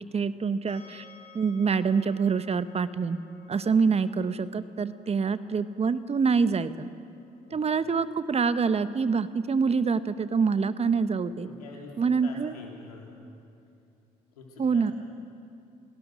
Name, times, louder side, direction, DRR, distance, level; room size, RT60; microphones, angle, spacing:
voice 1, 0.1-1.0 1.3-3.2 3.5-6.9 7.5-11.5 12.0-12.5 14.6-14.9, right 5 dB, 35° right, 13 dB, 0.9 m, -26 dB
sound 1, 0.7-13.6, left 3 dB, 55° left, 5.7 m, -58 dB
voice 2, 11.4-12.0 12.2-13.1 14.3-14.9, left 4 dB, 90° left, -1 dB, 3.5 m, -46 dB
28.0 x 18.5 x 6.3 m, 2.5 s
hypercardioid pair, 50°, 19 cm